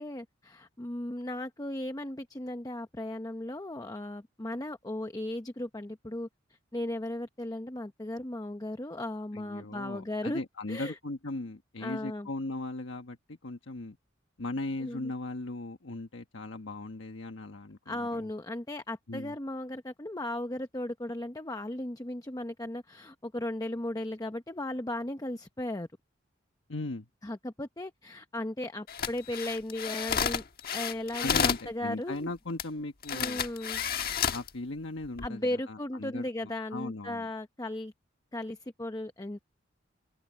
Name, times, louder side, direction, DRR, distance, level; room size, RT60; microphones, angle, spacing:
voice 1, 0.0-6.3 6.7-10.4 10.7-11.0 11.8-12.3 14.8-15.1 17.9-25.9 27.2-30.4 30.7-32.3 33.1-33.8 35.2-37.9 38.3-39.4, left 1 dB, 20° left, 0.8 m, -36 dB
voice 2, 9.3-14.0 14.4-18.3 19.1-19.3 26.7-27.1 31.2-33.4 34.3-37.3, left 2 dB, 70° left, 1.3 m, -38 dB
sound 1, 28.9-31.7 32.6-32.7 33.0-34.5 35.0-35.3, left 7 dB, 50° left, 1.3 m, -31 dB
open air
head